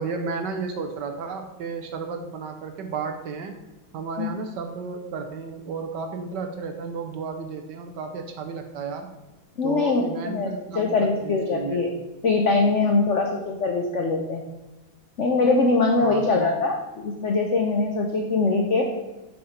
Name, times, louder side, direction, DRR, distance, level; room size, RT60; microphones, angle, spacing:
voice 1, 0.0-3.5 3.9-9.1 9.6-11.9 16.0-16.5, right 5 dB, 65° right, 5 dB, 1.2 m, -33 dB
voice 2, 9.6-11.9 12.2-14.4 15.2-18.9, left 3 dB, 70° left, 2 dB, 0.6 m, -22 dB
6.9 x 5.0 x 5.1 m, 1.1 s
omnidirectional pair, 2.3 m